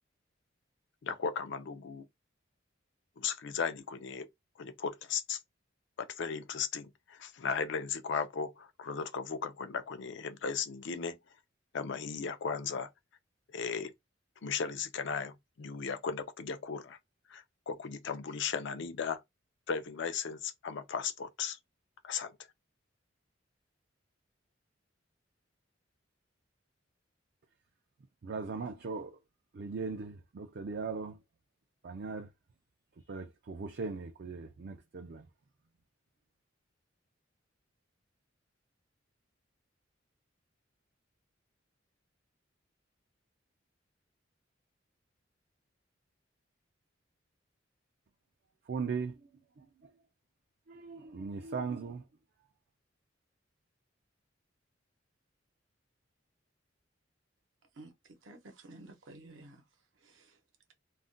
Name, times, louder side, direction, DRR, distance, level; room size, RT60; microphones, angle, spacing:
voice 1, 1.0-2.1 3.2-4.3 4.6-5.4 6.0-11.2 11.7-12.9 13.5-13.9 14.4-17.0 17.3-19.2 19.7-21.6 22.0-22.3, left 6 dB, 65° left, 0.4 m, -36 dB
voice 2, 28.2-29.2 29.5-31.2 31.8-32.3 33.1-35.3 48.7-49.2 49.6-49.9 50.7-52.0, right 4 dB, 55° right, 0.4 m, -39 dB
voice 3, 57.7-59.7 59.9-60.4, right 2 dB, 80° right, 0.8 m, -53 dB
2.4 x 2.1 x 3.7 m
head